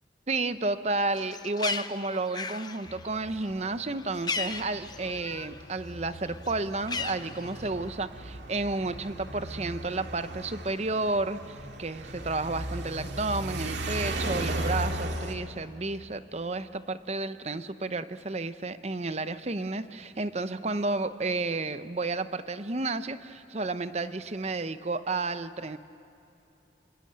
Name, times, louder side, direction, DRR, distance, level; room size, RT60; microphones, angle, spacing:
voice 1, 0.3-25.8, right 3 dB, 35° right, 12 dB, 0.8 m, -31 dB
Bird, 1.0-5.6 5.9-7.9, left 4 dB, 20° left, 0.7 m, -37 dB
sound 1, 2.9-15.4, right 1 dB, 70° right, 2.4 m, -36 dB
27.0 x 25.5 x 8.8 m, 2.8 s
head